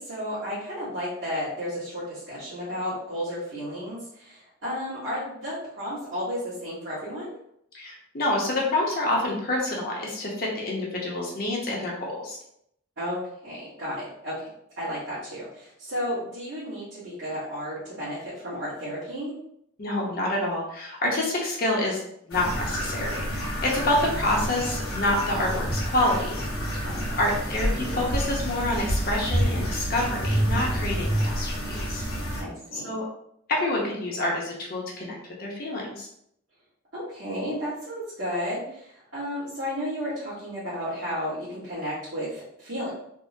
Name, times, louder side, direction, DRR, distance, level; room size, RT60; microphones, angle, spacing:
voice 1, 0.0-7.3 13.0-14.5 14.8-19.3 26.8-27.2 32.4-33.0 36.9-42.9, equal, 55° right, -12 dB, 1.3 m, -33 dB
voice 2, 7.7-12.4 19.8-22.0 22.3-26.3 27.2-31.6 31.9-32.0 32.7-33.0 33.5-36.1, left 1 dB, 45° left, -2 dB, 0.7 m, -27 dB
sound 1, 22.3-32.4, equal, 85° left, 1.1 m, -28 dB
3.5 x 2.0 x 2.6 m, 0.72 s
head